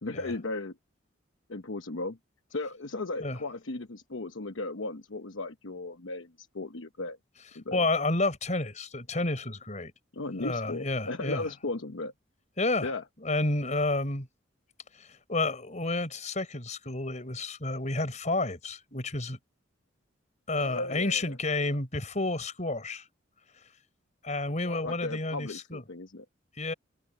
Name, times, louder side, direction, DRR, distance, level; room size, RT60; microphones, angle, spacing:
voice 1, 0.0-0.8 1.5-2.2 2.5-7.2 7.5-7.8 10.1-12.1 12.8-13.0 20.6-21.4 24.6-26.2, left 2 dB, 85° left, 1.0 m, -36 dB
voice 2, 7.7-9.9 10.4-11.4 12.6-12.9 13.2-14.3 15.0-19.4 20.5-23.1 24.2-25.8 26.6-26.7, left 2 dB, 40° left, 5.0 m, -30 dB
head